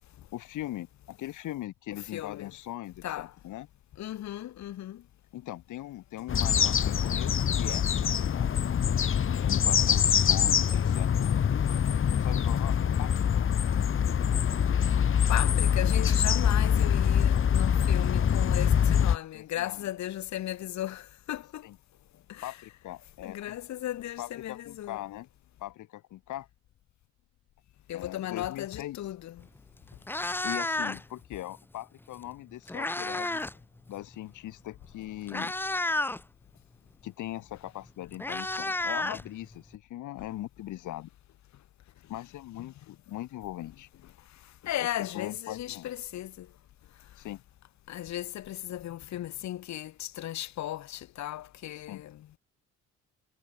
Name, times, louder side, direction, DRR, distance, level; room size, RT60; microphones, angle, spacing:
voice 1, 0.3-3.7 5.3-8.6 9.3-11.3 12.2-13.3 18.0-18.1 19.3-19.8 21.6-21.8 22.4-23.6 24.2-25.3 25.6-26.5 27.9-29.0 30.4-33.4 33.9-35.5 37.0-41.1 42.1-43.9 45.0-45.9 47.2-47.4 51.9-52.0, left 14 dB, 85° left, 2.4 m, -40 dB
voice 2, 2.1-2.5 3.0-3.3 4.0-5.0 15.3-21.7 22.3-22.6 23.2-25.0 27.9-29.4 44.6-46.5 47.9-52.3, left 13 dB, 65° left, 1.1 m, -36 dB
sound 1, 6.3-19.2, left 8 dB, 45° left, 1.2 m, -24 dB
Meow, 29.4-29.6 29.9-31.2 32.3-33.6 33.9-34.1 34.8-34.9 35.3-36.2 37.5-37.6 37.9-39.8, left 2 dB, 5° left, 0.5 m, -31 dB
cardioid pair, 90°, 30 cm